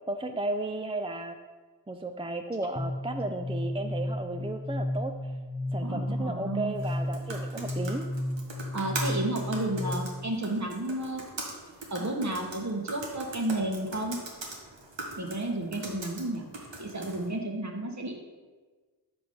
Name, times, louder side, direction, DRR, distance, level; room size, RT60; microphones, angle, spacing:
voice 1, 0.0-1.4 1.9-5.3 5.7-8.0, right 2 dB, 15° right, 6 dB, 0.4 m, -34 dB
sound 1, 2.8-10.3, left 1 dB, 20° left, 0.8 m, -33 dB
voice 2, 5.8-6.7 8.7-11.2 11.9-14.2 15.2-16.5 16.8-18.1, right 1 dB, 40° right, 2 dB, 1.3 m, -32 dB
sound 2, 6.7-17.3, right 2 dB, 80° right, 1.4 m, -41 dB
5.3 x 4.9 x 5.4 m, 1.4 s
cardioid pair, 40°, 43 cm